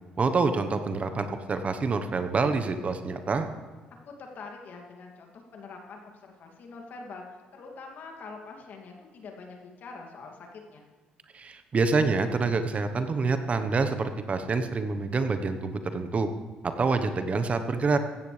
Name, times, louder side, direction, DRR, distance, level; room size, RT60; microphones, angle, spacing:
voice 1, 0.2-3.5 11.3-16.3 16.6-18.0, right 4 dB, 40° right, 9 dB, 1.1 m, -27 dB
voice 2, 4.0-10.8, left 4 dB, 60° left, 2 dB, 2.5 m, -44 dB
16.0 x 13.0 x 3.4 m, 1.4 s
supercardioid pair, 65°, 3 cm